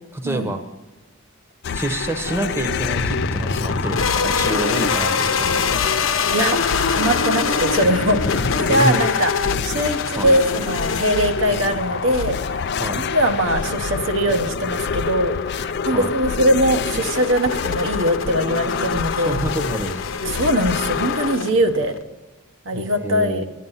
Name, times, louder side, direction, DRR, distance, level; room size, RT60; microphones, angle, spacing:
voice 1, 0.1-0.6 1.7-5.9 8.7-9.0 10.2-10.3 12.8-13.0 15.9-16.1 19.2-20.0 22.7-23.5, right 1 dB, 10° right, 6 dB, 0.9 m, -27 dB
sound 1, 1.6-21.4, left 6 dB, 55° left, 0.4 m, -27 dB
sound 2, 2.8-22.0, left 5 dB, 75° left, 0.8 m, -26 dB
voice 2, 6.9-9.3 9.6-12.6 13.0-19.4 20.2-21.9 22.7-23.5, equal, 65° right, 6 dB, 0.9 m, -21 dB
12.0 x 9.5 x 5.7 m, 1.2 s
head